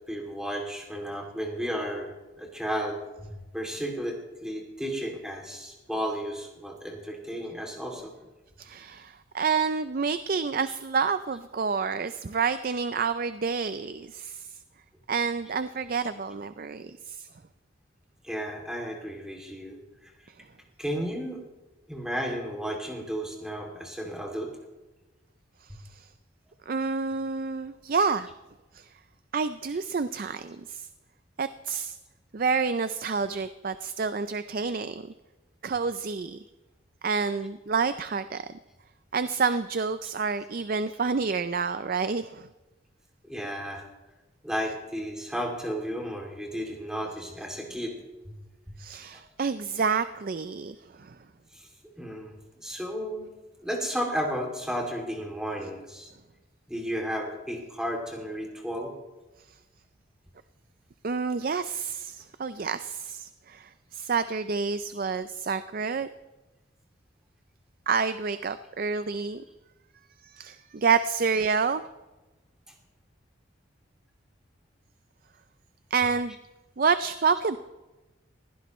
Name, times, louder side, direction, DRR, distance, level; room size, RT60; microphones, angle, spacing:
voice 1, 0.0-2.1 2.4-8.1 18.2-20.1 20.8-21.5 21.9-24.5 43.2-43.8 44.4-48.0 48.3-48.4 49.1-49.2 51.5-51.7 52.0-53.2 53.6-56.1 56.7-58.9, equal, 5° right, 0 dB, 2.6 m, -33 dB
voice 2, 8.6-14.6 15.1-17.3 25.9-26.1 26.7-28.3 28.7-28.9 29.3-30.9 31.4-32.0 32.3-35.0 35.6-36.4 37.0-38.5 39.1-42.5 48.8-51.2 61.0-66.1 67.9-69.4 70.2-71.8 75.9-76.4 76.8-77.6, right 5 dB, 45° right, 12 dB, 0.4 m, -28 dB
21.0 x 16.0 x 3.1 m, 1.1 s
head